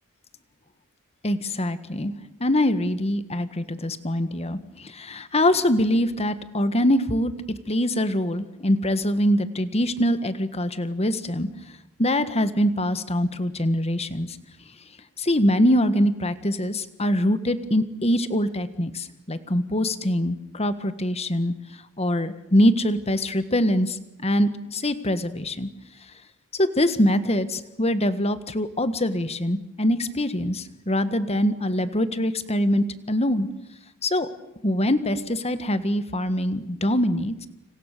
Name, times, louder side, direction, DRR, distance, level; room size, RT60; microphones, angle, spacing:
voice 1, 1.2-2.1 2.4-7.3 7.7-11.5 12.0-14.4 15.2-21.5 22.0-25.7 26.6-33.5 34.0-34.3 34.6-37.5, left 1 dB, 30° left, 12 dB, 1.6 m, -23 dB
29.5 x 27.0 x 6.8 m, 0.86 s
head